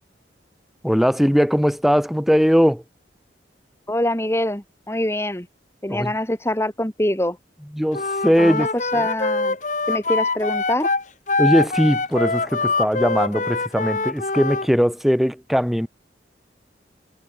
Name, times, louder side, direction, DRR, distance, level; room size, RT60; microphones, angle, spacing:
voice 1, 0.8-2.8 5.9-6.1 7.7-8.7 11.4-15.9, equal, ahead, 2.5 m, -19 dB
voice 2, 3.9-5.5 5.8-7.4 8.4-9.6 9.9-10.9, left 1 dB, 15° left, 1.8 m, -24 dB
Wind instrument woodwind instrument, 7.9-14.7, left 3 dB, 45° left, 2.7 m, -24 dB
head